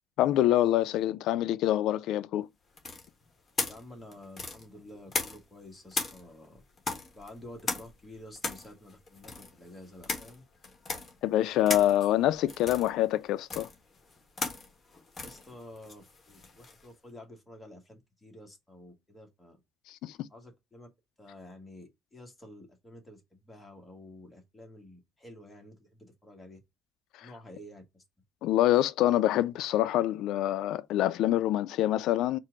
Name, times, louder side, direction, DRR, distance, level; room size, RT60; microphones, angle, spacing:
voice 1, 0.2-2.5 11.2-13.7 19.9-20.2 27.2-27.3 28.4-32.4, left 13 dB, 75° left, 0.3 m, -26 dB
sound 1, 2.8-5.6 5.9-16.9, left 4 dB, 30° left, 1.4 m, -37 dB
voice 2, 3.6-6.6 7.1-10.4 15.2-19.6 20.3-20.9 21.2-26.6 27.2-28.0, left 1 dB, 10° left, 1.7 m, -50 dB
4.4 x 2.5 x 4.5 m
cardioid pair, 135°, 0 cm